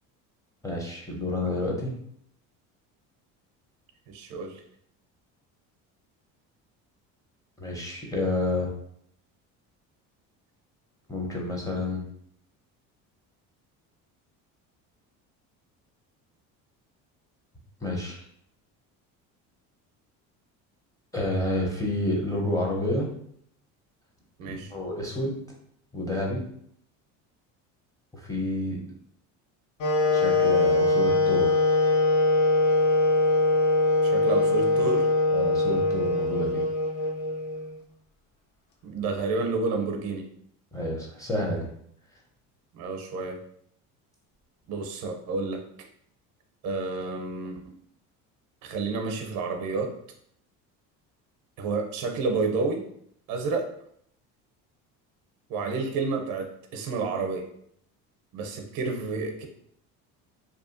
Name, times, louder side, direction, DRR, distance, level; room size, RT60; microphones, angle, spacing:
voice 1, 0.6-1.9 7.6-8.7 11.1-12.0 17.8-18.2 21.1-23.1 24.4-25.4 25.9-26.4 28.1-28.8 30.1-31.6 35.3-36.6 40.7-41.7, left 1 dB, 10° left, -2 dB, 0.7 m, -29 dB
voice 2, 4.1-4.6 24.4-24.7 34.0-35.1 38.8-40.3 42.7-43.4 44.7-45.6 46.6-47.8 48.6-50.0 51.6-52.9 53.3-53.7 55.5-57.5 58.3-59.5, right 4 dB, 65° right, 4 dB, 0.6 m, -30 dB
Wind instrument woodwind instrument, 29.8-37.8, left 2 dB, 50° left, 0.6 m, -22 dB
2.7 x 2.2 x 2.5 m, 0.67 s
supercardioid pair, 90°, 37 cm